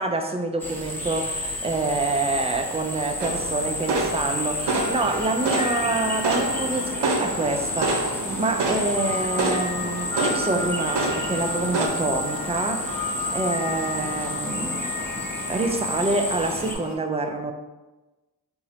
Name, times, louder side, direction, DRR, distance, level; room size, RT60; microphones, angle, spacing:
voice 1, 0.0-14.9 15.5-17.5, right 2 dB, 15° right, 6 dB, 0.3 m, -27 dB
sound 1, 0.6-16.7, left 1 dB, 5° left, 0.7 m, -31 dB
sound 2, 3.2-11.9, right 2 dB, 85° right, 0.5 m, -28 dB
sound 3, 4.7-17.0, left 2 dB, 45° left, 0.7 m, -33 dB
3.7 x 2.0 x 2.8 m, 1.1 s
cardioid pair, 45°, 40 cm